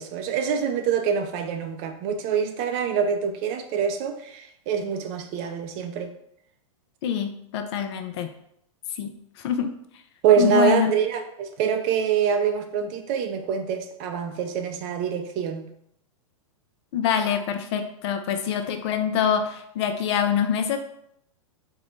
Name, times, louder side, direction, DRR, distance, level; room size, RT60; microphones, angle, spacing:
voice 1, 0.0-6.1 10.2-15.7, right 7 dB, 40° right, 6 dB, 0.5 m, -25 dB
voice 2, 7.0-8.3 9.0-9.1 9.4-9.7 10.4-10.9 16.9-20.8, left 8 dB, 55° left, 7 dB, 0.5 m, -25 dB
3.8 x 2.2 x 3.1 m, 0.73 s
hypercardioid pair, 120°, 17 cm